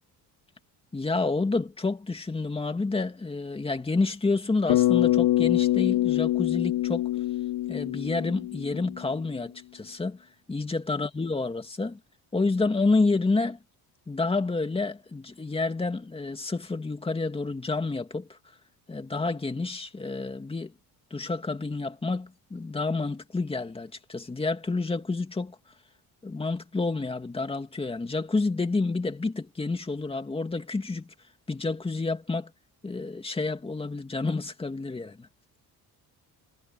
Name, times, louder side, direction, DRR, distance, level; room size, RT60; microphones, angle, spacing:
voice 1, 0.9-7.1 7.7-10.2 10.5-12.0 12.3-13.6 14.1-18.4 18.9-20.7 21.1-25.6 26.2-31.1 31.5-32.5 32.8-35.3, left 3 dB, 15° left, 2.3 m, -29 dB
Bass guitar, 4.7-9.1, left 14 dB, 90° left, 2.5 m, -25 dB
cardioid pair, 165°, 40 cm